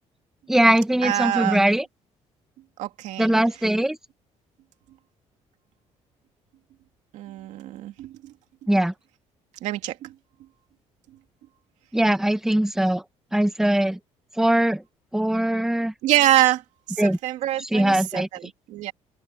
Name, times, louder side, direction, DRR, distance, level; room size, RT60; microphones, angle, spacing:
voice 1, 0.5-1.8 3.2-4.0 8.7-8.9 11.9-13.0 13.3-14.0 14.4-14.8 15.1-15.9 17.0-17.2 17.7-18.3, right 1 dB, 5° right, 1.4 m, -21 dB
voice 2, 1.0-1.7 2.8-3.3 7.1-8.3 9.6-10.1 16.0-18.9, right 14 dB, 85° right, 2.5 m, -25 dB
open air
cardioid pair, 150°, 12 cm